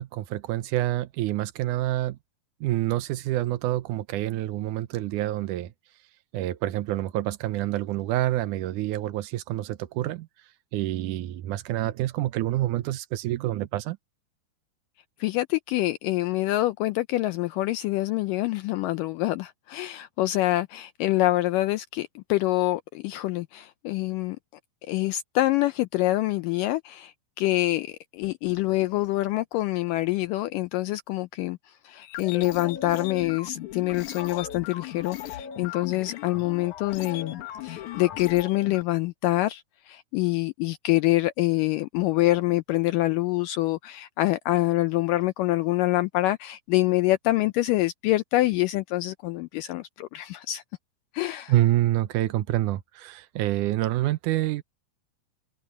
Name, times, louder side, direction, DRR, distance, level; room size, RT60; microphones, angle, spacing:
voice 1, 0.0-2.2 2.6-5.7 6.3-10.3 10.7-14.0 51.5-54.6, right 14 dB, 75° right, 1.9 m, -27 dB
voice 2, 15.2-24.4 24.9-31.6 31.8-37.3 37.6-50.6 51.1-51.5, left 17 dB, 85° left, 1.9 m, -26 dB
sound 1, 32.0-38.8, left 11 dB, 60° left, 2.3 m, -37 dB
omnidirectional pair, 4.4 m